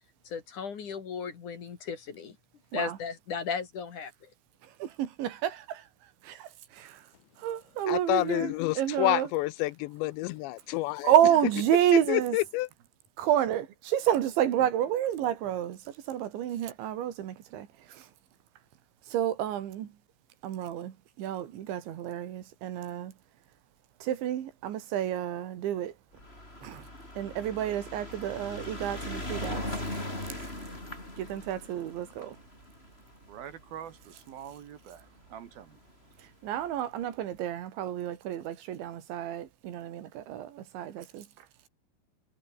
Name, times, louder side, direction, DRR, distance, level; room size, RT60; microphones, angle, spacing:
voice 1, 0.3-2.4 2.7-4.3, left 6 dB, 50° left, 3.7 m, -36 dB
voice 2, 4.6-7.1 7.4-9.3 11.0-12.4 13.2-18.1 19.1-20.0 20.4-23.2 24.0-26.0 26.6-26.9 27.2-29.6 31.2-32.4 36.2-41.5, right 11 dB, 80° right, 4.5 m, -30 dB
voice 3, 7.9-11.1 12.1-12.7, left 19 dB, 85° left, 2.9 m, -29 dB
sound 1, 26.1-34.6 35.5-35.6 35.8-35.9 36.1-36.2, left 1 dB, 10° left, 6.9 m, -39 dB
voice 4, 33.3-35.8, right 9 dB, 60° right, 3.4 m, -45 dB
omnidirectional pair, 5.2 m